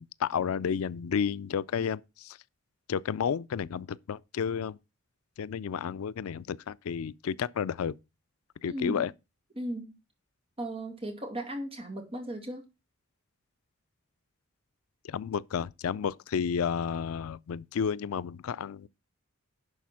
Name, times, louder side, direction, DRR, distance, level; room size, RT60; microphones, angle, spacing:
voice 1, 0.0-2.4 2.9-4.8 5.4-7.9 8.6-9.1 15.0-18.9, left 7 dB, 85° left, 0.4 m, -31 dB
voice 2, 8.7-9.0 9.6-9.9 10.6-12.6, right 1 dB, 25° right, 2.2 m, -36 dB
11.0 x 4.3 x 5.7 m
head